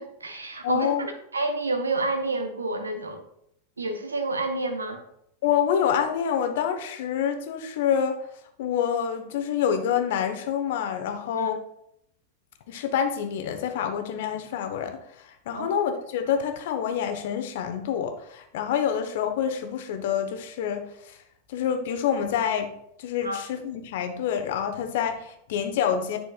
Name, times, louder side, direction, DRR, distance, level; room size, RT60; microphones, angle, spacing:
voice 1, 0.0-3.2 3.8-5.0 11.4-11.5 15.5-15.7 23.2-23.4, right 2 dB, 75° right, 7 dB, 1.1 m, -29 dB
voice 2, 0.6-1.1 5.4-8.2 8.6-11.6 12.7-21.2 21.5-22.7 23.0-26.2, left 8 dB, 55° left, 6 dB, 1.1 m, -27 dB
10.0 x 6.1 x 2.4 m, 0.74 s
figure-of-eight pair, 90°, 0 cm